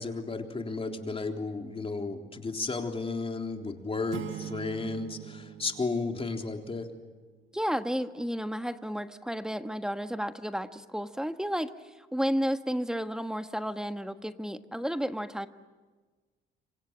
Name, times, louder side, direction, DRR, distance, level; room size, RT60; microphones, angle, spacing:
voice 1, 0.0-6.9, left 3 dB, 30° left, 3 dB, 3.7 m, -33 dB
sound 1, 4.1-6.9, right 10 dB, 80° right, 1.7 m, -42 dB
voice 2, 7.5-11.7 12.0-15.5, equal, 5° right, 8 dB, 1.4 m, -32 dB
27.5 x 25.5 x 7.6 m, 1.3 s
cardioid pair, 90°, 20 cm